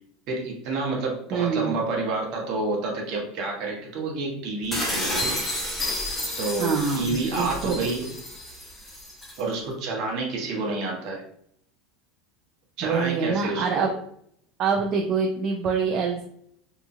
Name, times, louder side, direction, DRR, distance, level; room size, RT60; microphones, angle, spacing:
voice 1, 0.3-5.4 6.4-8.1 9.4-11.2 12.8-13.9, right 3 dB, 60° right, -1 dB, 1.1 m, -29 dB
voice 2, 1.3-1.7 5.2-5.3 6.6-7.8 12.8-13.9 14.6-16.2, right 5 dB, 40° right, 0 dB, 0.4 m, -25 dB
sound 1, 4.7-9.4, left 1 dB, 15° left, 0.9 m, -31 dB
2.9 x 2.3 x 2.6 m, 0.68 s
supercardioid pair, 135°, 0 cm